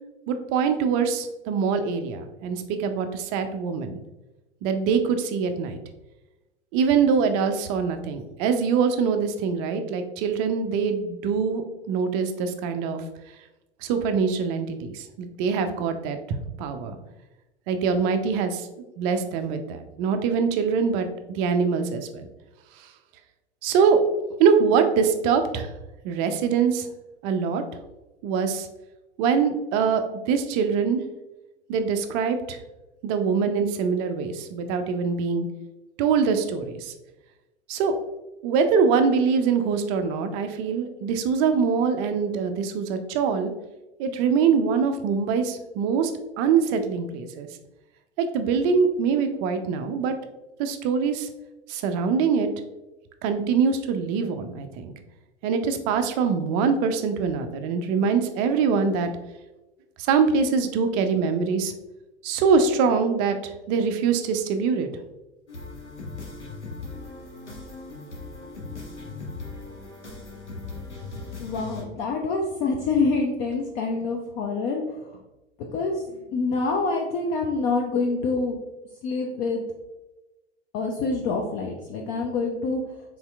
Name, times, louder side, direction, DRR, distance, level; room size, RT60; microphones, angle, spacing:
voice 1, 0.3-4.0 4.6-5.8 6.7-13.0 13.8-16.2 16.6-17.0 17.7-18.7 19.0-22.3 22.8-22.9 23.6-24.0 24.4-25.7 26.0-26.9 27.2-27.6 28.2-28.7 29.2-31.0 31.7-32.6 33.0-35.5 36.0-36.9 37.7-38.0 38.4-43.5 44.0-46.1 46.4-47.5 48.2-50.2 50.6-51.3 51.7-52.5 53.2-54.9 55.4-59.1 60.0-61.7 62.2-64.9, right 6 dB, 30° right, 7 dB, 0.4 m, -23 dB
sound 1, 65.5-71.8, left 3 dB, 85° left, 1.0 m, -38 dB
voice 2, 71.4-75.0 75.7-76.0 76.3-78.6 79.0-79.7 80.7-82.8, left 3 dB, 30° left, 1 dB, 0.5 m, -26 dB
4.2 x 3.7 x 2.3 m, 1.0 s
figure-of-eight pair, 90°, 34 cm